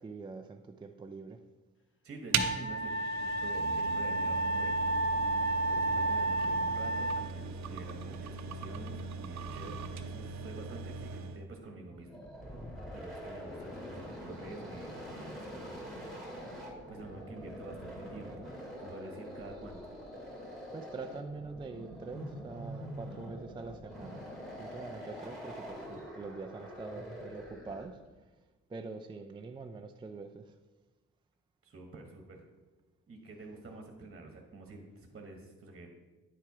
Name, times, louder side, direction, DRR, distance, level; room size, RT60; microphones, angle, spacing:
voice 1, 0.0-1.4 20.7-24.2 24.6-28.0 28.7-30.5, right 3 dB, 15° right, 5 dB, 0.4 m, -44 dB
voice 2, 2.0-4.7 5.6-12.5 12.9-15.8 16.9-18.5 18.8-19.9 31.6-32.4 33.1-35.9, right 2 dB, 35° right, 2 dB, 1.3 m, -48 dB
Wind instrument woodwind instrument, 2.3-7.2, right 2 dB, 40° left, 0.9 m, -31 dB
sound 1, 2.3-11.5, right 5 dB, 60° right, 0.7 m, -39 dB
sound 2, 12.0-28.1, equal, ahead, 2.1 m, -45 dB
9.9 x 4.5 x 4.7 m, 1.2 s
cardioid pair, 90°, 30 cm